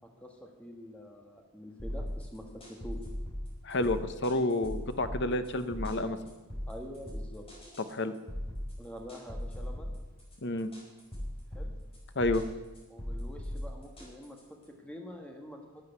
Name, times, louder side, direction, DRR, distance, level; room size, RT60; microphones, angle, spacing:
voice 1, 0.0-3.0 6.7-7.4 8.8-10.0 11.5-11.7 12.9-14.4 14.8-15.6, equal, 5° left, 2 dB, 1.5 m, -46 dB
sound 1, 1.8-14.6, equal, 25° left, 4.5 m, -39 dB
voice 2, 3.6-6.2 7.9-8.1 10.4-10.7 12.1-12.4, left 2 dB, 50° left, 10 dB, 0.9 m, -30 dB
12.0 x 8.0 x 9.4 m, 1.2 s
head